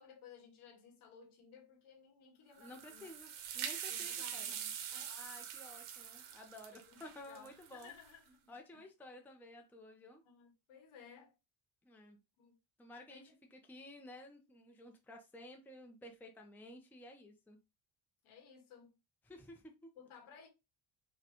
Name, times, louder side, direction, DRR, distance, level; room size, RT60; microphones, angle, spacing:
voice 1, 0.0-3.1 3.9-5.2 6.7-7.0 7.3-8.9 10.2-11.3 12.4-12.6 13.1-13.3 18.2-19.0 20.0-20.5, left 6 dB, 80° left, 1.6 m, -58 dB
voice 2, 2.6-4.6 5.1-7.9 8.5-10.2 11.8-12.2 12.8-17.6 19.2-19.9, left 1 dB, 5° left, 0.5 m, -54 dB
sound 1, 2.6-8.1, right 9 dB, 80° right, 0.9 m, -44 dB
5.0 x 2.2 x 2.8 m
cardioid pair, 135°, 49 cm